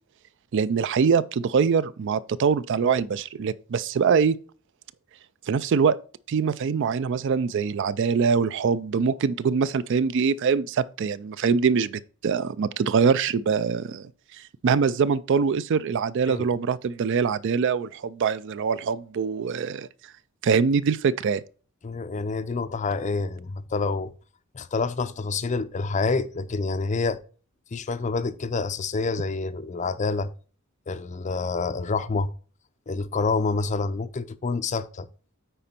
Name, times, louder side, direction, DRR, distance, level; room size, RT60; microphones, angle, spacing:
voice 1, 0.5-4.4 5.5-6.0 6.3-19.9 20.4-21.4, right 6 dB, 55° right, 0.4 m, -23 dB
voice 2, 21.8-24.1 24.5-27.2 27.7-30.3 30.9-32.3 32.9-35.1, left 4 dB, 35° left, 0.4 m, -27 dB
9.0 x 4.3 x 4.3 m
head